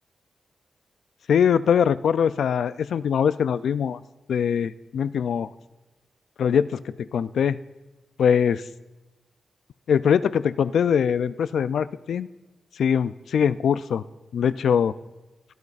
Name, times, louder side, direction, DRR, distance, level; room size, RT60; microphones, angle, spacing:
voice 1, 1.3-4.0 4.3-5.5 6.4-7.6 8.2-8.6 9.9-12.3 12.8-14.0 14.3-14.9, left 7 dB, 90° left, 15 dB, 0.3 m, -22 dB
18.0 x 12.0 x 2.5 m, 1.1 s
wide cardioid pair, 165°, 0 cm